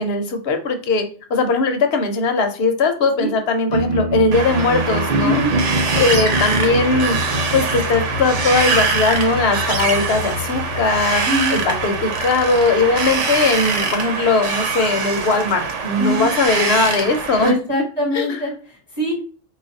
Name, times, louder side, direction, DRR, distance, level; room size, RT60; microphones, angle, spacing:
voice 1, 0.0-5.4 6.0-7.2 7.5-17.5 18.1-18.4, left 3 dB, 60° left, 5 dB, 0.9 m, -19 dB
sound 1, 3.7-13.8, left 1 dB, 50° right, 0.5 m, -26 dB
Wind, 4.3-17.5, right 5 dB, 75° right, 1.1 m, -23 dB
voice 2, 17.4-19.2, equal, 20° right, -4 dB, 1.0 m, -22 dB
4.4 x 2.4 x 3.9 m, 0.39 s
omnidirectional pair, 1.3 m